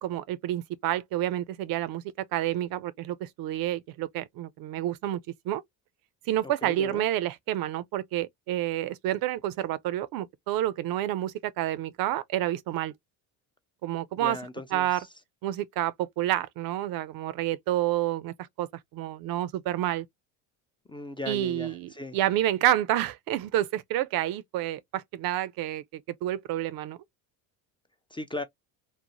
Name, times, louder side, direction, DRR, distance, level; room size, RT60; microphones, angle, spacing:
voice 1, 0.0-2.0 2.3-5.2 5.5-5.6 6.3-12.9 13.8-14.4 14.7-15.0 15.4-20.1 21.3-27.0, right 13 dB, 60° right, 0.5 m, -29 dB
voice 2, 6.4-7.0 14.2-15.1 20.9-22.2 28.1-28.4, left 2 dB, 15° left, 0.4 m, -38 dB
2.6 x 2.0 x 2.8 m
supercardioid pair, 75°, 41 cm